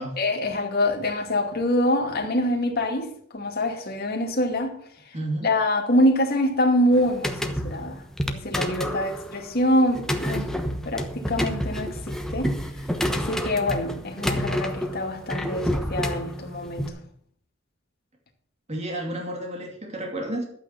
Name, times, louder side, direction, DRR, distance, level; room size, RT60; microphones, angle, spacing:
voice 1, 0.2-4.7 5.4-10.5 10.8-12.5 13.1-17.0, left 1 dB, 50° left, 2.4 m, -25 dB
voice 2, 5.1-5.5 18.7-20.4, right 1 dB, 35° right, 2.6 m, -31 dB
sound 1, 6.9-16.9, equal, 5° left, 1.0 m, -29 dB
12.5 x 8.7 x 5.9 m
head